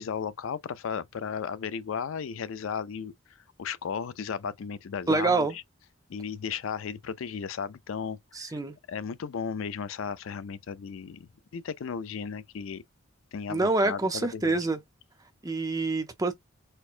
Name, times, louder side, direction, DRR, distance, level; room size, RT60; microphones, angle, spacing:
voice 1, 0.0-3.1 3.6-5.6 6.1-8.6 8.9-12.8 13.3-14.6, left 6 dB, 75° left, 0.4 m, -35 dB
voice 2, 5.1-5.5 8.4-8.8 13.5-14.8 15.4-16.3, right 3 dB, 15° right, 0.6 m, -26 dB
4.4 x 2.2 x 2.4 m
head